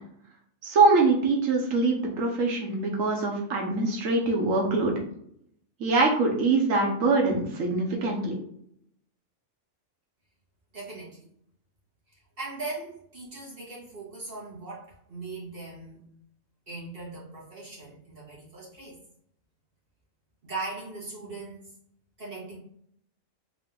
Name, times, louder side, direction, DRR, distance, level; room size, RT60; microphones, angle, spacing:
voice 1, 0.6-4.9 5.8-8.4, right 3 dB, 85° right, 1 dB, 1.3 m, -23 dB
voice 2, 10.7-11.3 12.1-16.0 16.7-19.0 20.4-21.7 22.2-22.6, right 3 dB, 45° right, -7 dB, 1.7 m, -39 dB
3.9 x 2.7 x 3.7 m, 0.69 s
omnidirectional pair, 1.3 m